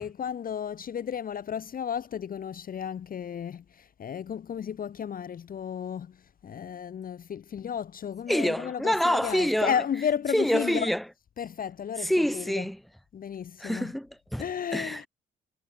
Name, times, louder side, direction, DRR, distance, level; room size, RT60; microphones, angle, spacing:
voice 1, 0.0-10.9 11.4-12.6 13.1-13.9 14.4-15.1, left 8 dB, 45° left, 0.9 m, -33 dB
voice 2, 8.3-9.7 10.3-11.0 12.0-12.8 13.6-15.1, equal, ahead, 1.9 m, -27 dB
cardioid pair, 90°, 20 cm